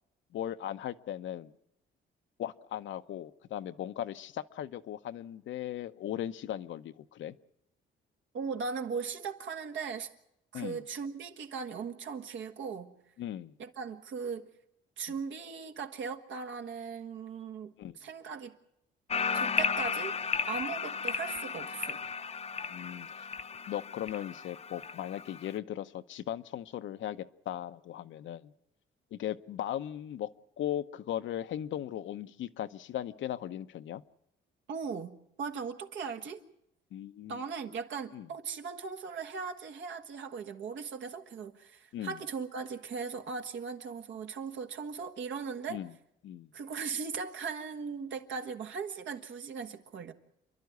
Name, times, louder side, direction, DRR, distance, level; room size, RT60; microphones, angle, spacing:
voice 1, 0.3-1.5 2.4-7.3 10.5-10.8 13.2-13.5 17.8-18.0 22.7-23.3 23.7-28.5 29.1-30.3 30.6-34.0 36.9-37.4 38.1-38.3 41.9-42.2 45.7-45.9 46.2-46.5, left 11 dB, 70° left, 11 dB, 0.8 m, -38 dB
voice 2, 8.3-10.1 10.5-13.0 13.6-14.5 15.0-18.6 19.3-20.1 20.5-22.0 34.7-36.4 37.3-45.8 46.5-50.1, right 5 dB, 70° right, 6 dB, 1.6 m, -38 dB
sound 1, 19.1-25.6, left 5 dB, 30° left, 0.7 m, -34 dB
28.5 x 11.5 x 9.5 m, 0.81 s
cardioid pair, 90°, 20 cm